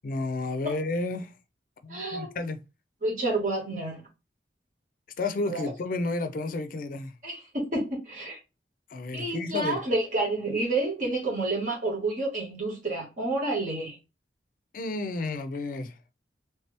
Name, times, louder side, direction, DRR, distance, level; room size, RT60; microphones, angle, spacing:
voice 1, 0.0-1.4 1.8-2.6 5.2-7.1 8.9-9.8 14.7-16.0, left 2 dB, 50° left, 0.4 m, -31 dB
voice 2, 1.9-2.3 3.0-4.0 5.5-5.7 7.2-8.4 9.1-14.0, right 2 dB, 45° right, 1.5 m, -29 dB
3.2 x 2.8 x 3.3 m
head